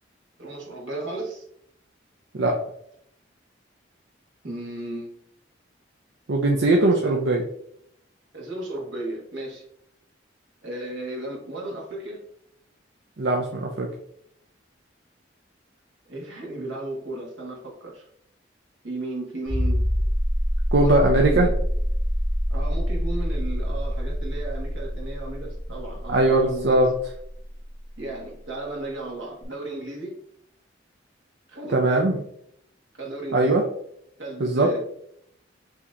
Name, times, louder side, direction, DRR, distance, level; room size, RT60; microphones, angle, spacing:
voice 1, 0.4-1.5 4.4-5.3 6.7-7.2 8.3-9.6 10.6-12.2 16.1-18.1 18.8-19.8 20.8-21.5 22.5-26.8 28.0-30.2 31.5-31.9 32.9-33.6 34.2-34.8, right 2 dB, 85° right, -2 dB, 1.5 m, -34 dB
voice 2, 6.3-7.4 13.2-13.9 20.7-21.5 26.1-26.9 31.7-32.2 33.3-33.6 34.4-34.7, right 2 dB, 65° right, 0 dB, 0.6 m, -20 dB
sound 1, 19.5-27.9 29.4-29.5, equal, 10° left, 0.3 m, -26 dB
5.8 x 2.9 x 2.5 m, 0.70 s
head